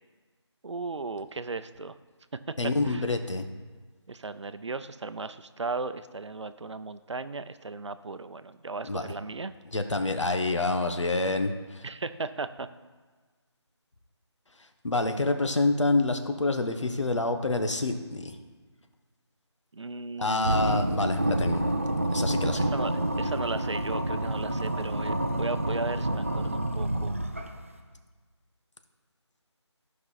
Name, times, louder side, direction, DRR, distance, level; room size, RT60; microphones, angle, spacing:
voice 1, 0.6-2.0 2.8-3.1 4.1-9.5 11.8-12.7 19.7-20.8 22.5-27.2, right 3 dB, 75° right, 12 dB, 0.6 m, -36 dB
voice 2, 2.6-3.4 8.9-9.1 9.7-11.9 14.8-18.4 20.2-21.6 22.1-22.7, left 2 dB, 85° left, 7 dB, 1.2 m, -27 dB
sound 1, 20.4-27.7, right 1 dB, 30° right, 0.5 m, -28 dB
13.5 x 5.5 x 4.1 m, 1.4 s
figure-of-eight pair, 175°, 15 cm